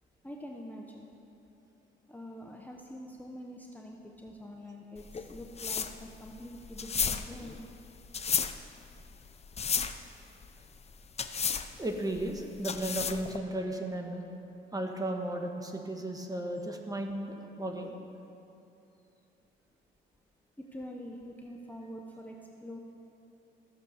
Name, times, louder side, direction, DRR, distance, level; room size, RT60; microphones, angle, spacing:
voice 1, 0.2-1.1 2.1-7.6 20.6-22.8, equal, 10° left, 0 dB, 0.9 m, -45 dB
sound 1, 5.0-13.4, left 6 dB, 30° left, 0.6 m, -34 dB
voice 2, 11.8-14.2 14.7-18.0, right 1 dB, 20° right, 3 dB, 1.4 m, -35 dB
13.5 x 6.9 x 6.5 m, 2.8 s
cardioid pair, 90°, 20 cm